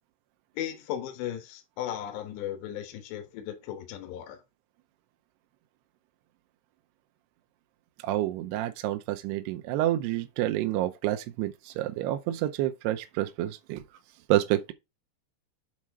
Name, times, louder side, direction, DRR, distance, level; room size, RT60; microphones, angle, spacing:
voice 1, 0.6-4.4, left 11 dB, 75° left, 3.3 m, -36 dB
voice 2, 8.0-13.8 14.3-14.7, right 14 dB, 80° right, 2.4 m, -28 dB
7.4 x 4.2 x 4.8 m
omnidirectional pair, 5.3 m